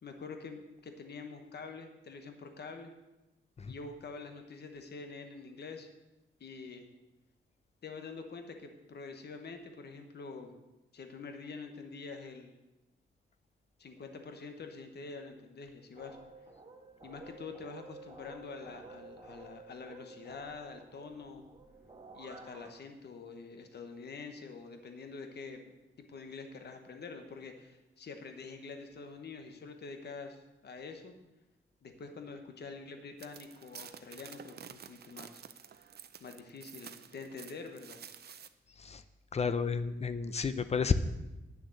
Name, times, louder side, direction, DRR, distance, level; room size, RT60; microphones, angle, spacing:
voice 1, 0.0-2.9 3.7-5.9 6.4-6.9 7.8-10.5 10.9-12.5 13.8-16.2 17.0-21.4 22.1-25.7 26.1-31.1 31.8-35.4 36.2-38.0, left 4 dB, 50° left, 6 dB, 1.0 m, -46 dB
sound 1, 16.0-22.7, right 3 dB, 25° right, 1.2 m, -52 dB
sound 2, 33.2-38.5, right 8 dB, 50° right, 0.5 m, -50 dB
voice 2, 39.3-40.9, left 5 dB, 30° left, 12 dB, 0.5 m, -31 dB
9.8 x 6.6 x 7.6 m, 1.0 s
wide cardioid pair, 180°, 21 cm